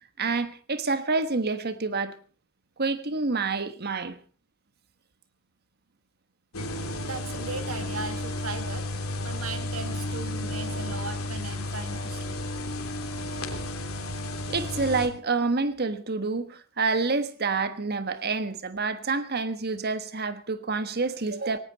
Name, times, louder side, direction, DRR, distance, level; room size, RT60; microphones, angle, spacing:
voice 1, 0.2-2.1 2.8-4.2 14.5-21.6, right 4 dB, 50° right, 1.4 m, -28 dB
sound 1, 6.5-15.1, left 1 dB, 85° left, 3.2 m, -32 dB
voice 2, 7.0-8.9 9.2-12.4, right 3 dB, 80° right, 2.5 m, -37 dB
18.5 x 17.5 x 4.2 m
head